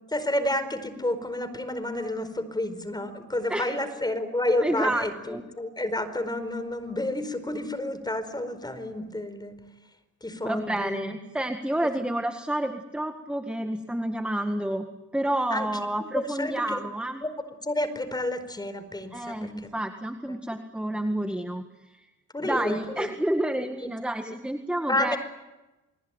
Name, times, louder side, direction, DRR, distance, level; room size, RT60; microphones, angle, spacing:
voice 1, 0.1-9.6 10.2-11.0 15.5-15.7 16.1-16.8 17.2-17.3 17.6-19.7 22.3-23.1 24.3-24.4 24.9-25.2, left 1 dB, 15° left, 11 dB, 4.7 m, -30 dB
voice 2, 4.6-5.4 10.4-17.2 19.1-22.1 22.4-25.2, right 1 dB, 5° right, 6 dB, 1.8 m, -29 dB
30.0 x 21.0 x 9.1 m, 1.1 s
cardioid pair, 90°, 30 cm